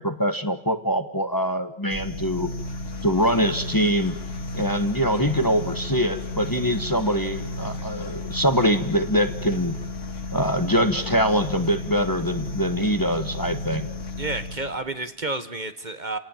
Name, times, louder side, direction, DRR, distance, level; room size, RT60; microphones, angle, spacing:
voice 1, 0.0-2.5 3.0-4.2 4.5-9.8 10.3-13.9, equal, 15° left, 9 dB, 1.3 m, -23 dB
sound 1, 1.9-14.9, left 2 dB, 85° left, 2.1 m, -33 dB
voice 2, 14.2-16.2, right 2 dB, 40° right, 10 dB, 1.5 m, -30 dB
30.0 x 18.5 x 9.1 m, 0.79 s
omnidirectional pair, 1.2 m